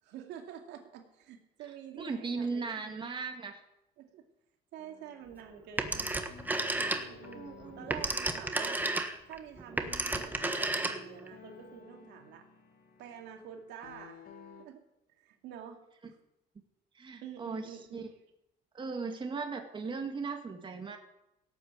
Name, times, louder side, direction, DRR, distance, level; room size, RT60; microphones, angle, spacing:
voice 1, 0.0-3.0 4.0-4.3 4.7-6.3 6.7-8.9 9.3-12.5 13.0-14.2 14.6-14.8 15.2-15.8 17.2-18.2, right 9 dB, 85° right, 3 dB, 2.6 m, -48 dB
voice 2, 2.0-3.6 7.3-8.0 17.0-17.6 17.9-18.1 18.7-21.0, right 4 dB, 25° right, 4 dB, 2.1 m, -37 dB
sound 1, 4.8-14.6, left 5 dB, 55° left, 2.5 m, -54 dB
Telephone, 5.8-7.3 7.7-11.3, right 2 dB, 10° right, 1.4 m, -32 dB
17.5 x 8.3 x 8.0 m, 0.85 s
cardioid pair, 125°, 18 cm